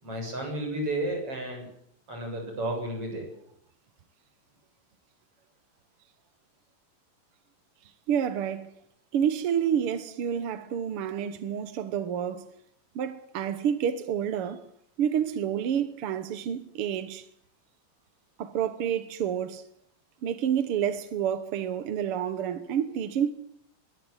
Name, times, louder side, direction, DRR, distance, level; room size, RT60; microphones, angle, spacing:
voice 1, 0.0-1.7 2.1-3.3, right 1 dB, 40° right, 8.3 m, -32 dB
voice 2, 8.1-8.7 9.1-12.5 12.9-14.7 15.0-17.3 18.4-19.6 20.2-23.3, right 9 dB, 65° right, 1.5 m, -29 dB
21.5 x 17.5 x 8.1 m
omnidirectional pair, 3.9 m